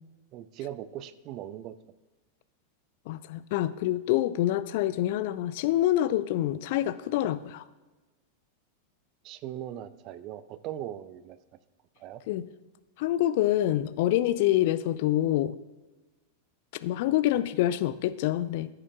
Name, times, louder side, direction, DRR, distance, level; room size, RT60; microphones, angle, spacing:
voice 1, 0.3-1.8 9.2-11.4 12.0-12.2, right 11 dB, 40° right, 15 dB, 0.5 m, -39 dB
voice 2, 3.1-7.6 12.3-12.4 13.0-15.5 16.8-18.7, left 13 dB, 50° left, 15 dB, 0.4 m, -26 dB
14.5 x 6.7 x 2.4 m, 1.2 s
figure-of-eight pair, 90°, 0 cm